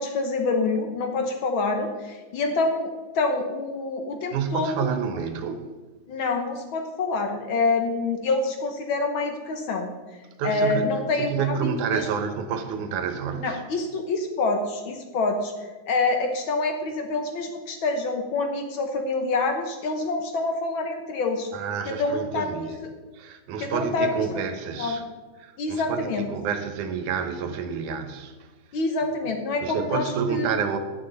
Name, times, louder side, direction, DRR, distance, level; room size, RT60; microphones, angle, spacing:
voice 1, 0.0-5.0 6.1-9.9 10.4-12.0 13.4-15.5 15.9-21.5 21.9-22.7 23.6-24.4 24.8-25.0 25.6-26.3 28.7-30.5, left 3 dB, 65° left, 1.3 m, -26 dB
voice 2, 4.3-5.6 10.4-10.9 11.2-13.6 21.5-22.8 23.1-25.0 25.4-28.8 29.6-30.8, right 6 dB, 80° right, 2.5 m, -29 dB
11.5 x 9.8 x 4.0 m
omnidirectional pair, 3.5 m